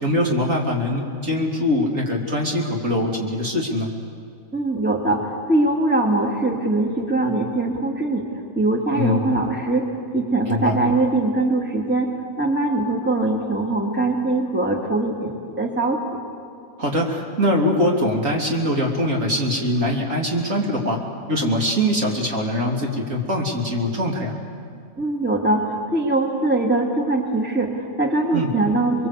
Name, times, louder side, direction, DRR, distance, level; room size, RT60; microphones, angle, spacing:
voice 1, 0.0-3.9 8.9-9.3 10.5-10.8 16.8-21.0 21.3-24.3 28.3-28.5, left 1 dB, 60° right, -1 dB, 3.5 m, -22 dB
voice 2, 4.5-8.3 8.6-12.1 12.4-16.0 25.0-29.1, right 2 dB, 5° right, 1 dB, 2.4 m, -22 dB
29.5 x 22.5 x 8.3 m, 2.3 s
omnidirectional pair, 1.5 m